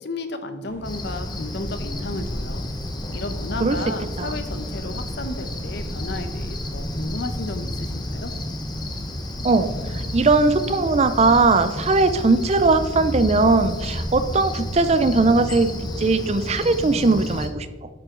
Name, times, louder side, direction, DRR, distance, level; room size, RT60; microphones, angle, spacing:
voice 1, 0.0-2.7 3.1-8.3, left 2 dB, 60° left, 9 dB, 0.9 m, -33 dB
sound 1, 0.6-11.5, equal, 10° right, 2.1 m, -41 dB
Cricket, 0.8-17.5, left 1 dB, 20° left, 1.0 m, -31 dB
voice 2, 9.4-17.9, right 3 dB, 35° right, 12 dB, 0.5 m, -19 dB
11.0 x 7.7 x 3.9 m, 1.3 s
head